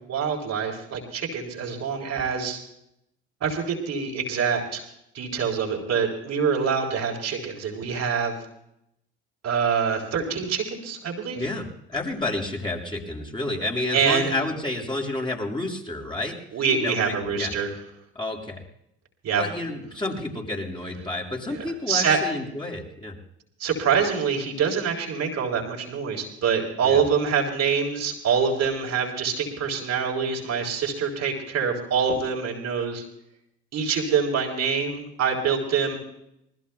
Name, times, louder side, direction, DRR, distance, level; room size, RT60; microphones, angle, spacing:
voice 1, 0.0-2.6 3.4-4.8 5.1-8.3 9.4-11.4 13.9-14.4 16.5-17.7 19.2-19.4 21.5-22.2 23.6-33.0 33.7-36.0, right 6 dB, 50° right, 0 dB, 3.6 m, -25 dB
voice 2, 11.3-16.4 16.8-17.5 18.1-18.6 19.3-23.2 26.8-27.0, left 2 dB, 15° left, -1 dB, 6.2 m, -30 dB
26.5 x 19.5 x 2.3 m, 0.78 s
hypercardioid pair, 60°, 33 cm